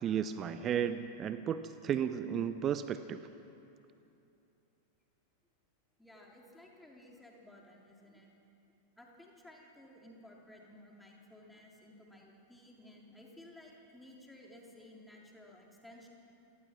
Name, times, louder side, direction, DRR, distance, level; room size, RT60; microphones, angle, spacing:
voice 1, 0.0-3.2, right 8 dB, 30° right, 12 dB, 0.7 m, -34 dB
voice 2, 6.0-8.3 9.0-16.1, left 1 dB, 5° left, -2 dB, 3.8 m, -56 dB
28.0 x 18.5 x 6.1 m, 2.8 s
figure-of-eight pair, 90°, 0 cm